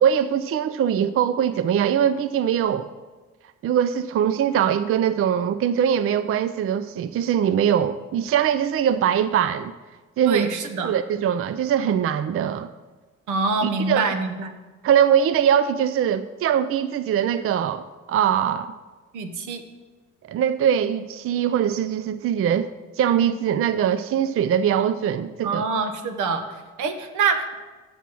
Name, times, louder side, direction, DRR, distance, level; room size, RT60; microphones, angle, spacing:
voice 1, 0.0-2.9 3.6-9.7 10.2-10.5 10.8-12.7 13.6-14.1 14.8-18.7 20.2-22.7 23.0-25.7, right 9 dB, 50° right, 12 dB, 0.4 m, -22 dB
voice 2, 10.2-10.9 13.3-14.5 19.1-19.6 25.4-27.5, right 4 dB, 80° right, 8 dB, 1.0 m, -25 dB
7.2 x 7.1 x 6.1 m, 1.3 s
cardioid pair, 90°, 30 cm